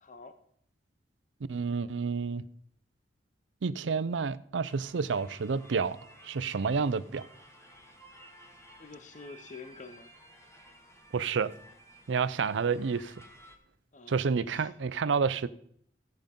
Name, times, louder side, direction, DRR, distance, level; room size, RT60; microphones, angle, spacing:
voice 1, 0.0-0.4 8.8-10.1 13.9-14.7, left 4 dB, 45° left, 0.7 m, -48 dB
voice 2, 1.5-2.5 3.6-6.0 6.2-7.2 11.1-11.5 12.1-13.1 14.1-15.5, right 5 dB, 90° right, 0.5 m, -29 dB
sound 1, 4.6-13.6, right 1 dB, 15° left, 1.2 m, -55 dB
15.5 x 5.2 x 5.2 m
head